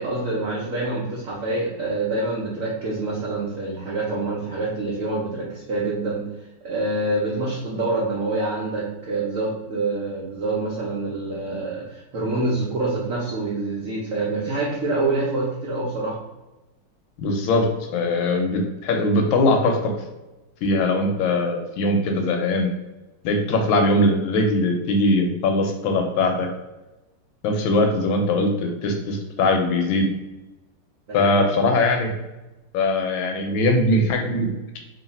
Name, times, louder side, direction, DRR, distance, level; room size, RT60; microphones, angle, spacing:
voice 1, 0.0-6.2 6.6-16.2 31.1-31.4, right 2 dB, 85° right, -5 dB, 0.7 m, -26 dB
voice 2, 17.2-19.9 20.6-22.7 23.2-26.5 27.4-30.1 31.1-32.1 32.7-34.8, left 2 dB, 75° left, 3 dB, 1.3 m, -21 dB
3.1 x 2.7 x 4.0 m, 1.0 s
omnidirectional pair, 2.4 m